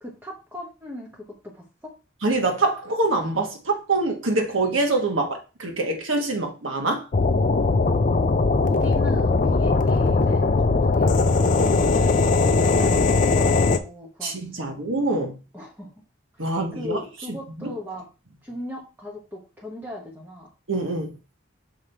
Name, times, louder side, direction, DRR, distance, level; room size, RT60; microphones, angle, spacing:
voice 1, 0.0-1.9 8.4-14.8 15.5-15.9 16.3-18.1 18.4-20.5, left 1 dB, 10° right, 1.0 m, -38 dB
voice 2, 2.2-7.1 11.4-11.5 12.4-12.6 14.2-15.4 16.4-17.0 17.6-17.7 20.7-21.2, right 2 dB, 80° right, 1.4 m, -25 dB
sound 1, 7.1-13.8, left 3 dB, 40° left, 0.4 m, -19 dB
6.1 x 3.6 x 4.4 m
head